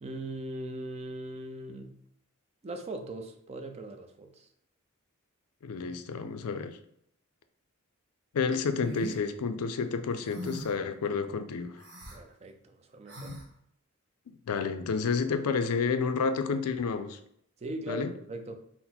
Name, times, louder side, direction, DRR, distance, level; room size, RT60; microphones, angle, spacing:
voice 1, 0.0-2.0 2.6-4.5 12.1-13.4 17.6-18.6, right 1 dB, 30° right, 0.4 m, -40 dB
voice 2, 5.6-6.8 8.3-11.8 14.3-17.2 17.9-18.1, left 5 dB, 80° left, 0.4 m, -30 dB
sound 1, 8.8-9.2 10.3-10.8 11.8-12.2 13.1-13.4, equal, 55° right, 1.3 m, -40 dB
4.0 x 2.0 x 4.2 m
head